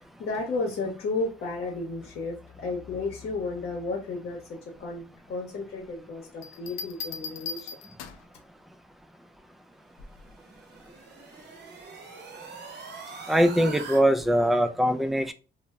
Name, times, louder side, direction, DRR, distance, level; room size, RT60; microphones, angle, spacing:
voice 1, 0.2-7.8, left 3 dB, 60° left, 0.8 m, -33 dB
sound 1, 6.4-8.4 10.0-10.3, left 5 dB, 80° left, 0.4 m, -38 dB
sound 2, 10.0-14.0, right 4 dB, 60° right, 0.8 m, -43 dB
voice 2, 13.3-15.3, equal, ahead, 0.3 m, -22 dB
2.1 x 2.0 x 3.4 m
cardioid pair, 90°, 20 cm